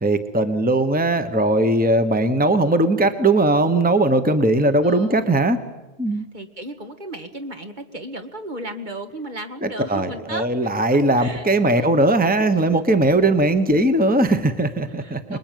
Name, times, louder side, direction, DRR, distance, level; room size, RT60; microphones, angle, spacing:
voice 1, 0.0-5.6 6.0-6.3 9.6-15.4, right 2 dB, 10° right, 8 dB, 1.2 m, -19 dB
voice 2, 4.8-5.3 6.1-10.5 11.2-11.9 12.4-12.8 15.0-15.4, right 1 dB, 45° right, 5 dB, 2.0 m, -35 dB
25.5 x 21.5 x 9.3 m, 1.1 s
omnidirectional pair, 1.1 m